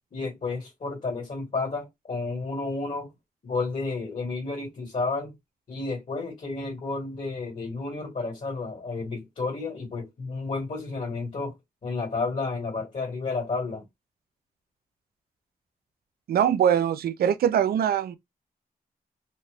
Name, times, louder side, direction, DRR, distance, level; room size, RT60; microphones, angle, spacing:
voice 1, 0.1-3.1 3.4-5.3 5.7-11.5 11.8-13.8, left 3 dB, 55° left, 1.7 m, -31 dB
voice 2, 16.3-18.2, right 9 dB, 85° right, 0.4 m, -22 dB
2.7 x 2.2 x 3.3 m
cardioid pair, 60°, 15 cm